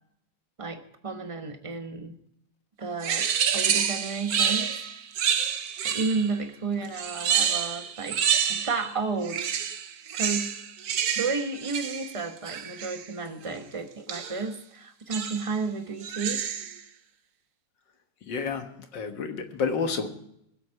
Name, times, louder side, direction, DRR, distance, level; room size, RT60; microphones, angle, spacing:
voice 1, 0.6-2.1 2.8-4.7 5.8-8.2 8.5-9.4 10.2-10.5 11.2-16.4, right 4 dB, 20° right, 6 dB, 0.9 m, -32 dB
sound 1, 3.0-6.4 6.9-8.9 9.2-13.1 14.1-14.5 15.1-15.6 16.0-16.8, right 8 dB, 60° right, 1.2 m, -28 dB
voice 2, 18.2-20.1, left 5 dB, 75° left, 6 dB, 2.0 m, -30 dB
22.5 x 8.1 x 4.7 m, 0.75 s
omnidirectional pair, 2.0 m